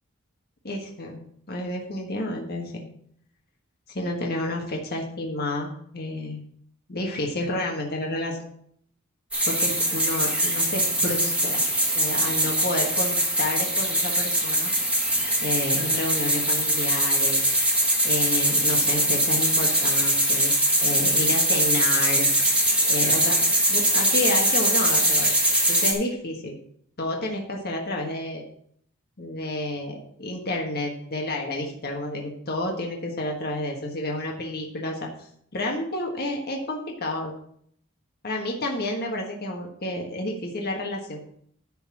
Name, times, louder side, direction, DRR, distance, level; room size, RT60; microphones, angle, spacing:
voice 1, 0.6-1.2 1.5-2.8 3.9-6.4 6.9-8.5 9.5-11.6 11.9-14.7 15.4-17.5 18.0-22.3 22.9-23.4 23.7-25.4 25.7-26.6 27.0-28.4 29.2-35.0 35.5-37.3 38.2-41.2, left 1 dB, 50° left, 1 dB, 1.4 m, -30 dB
sound 1, 9.3-25.9, right 1 dB, 5° right, 1.8 m, -22 dB
10.5 x 4.1 x 6.1 m, 0.66 s
head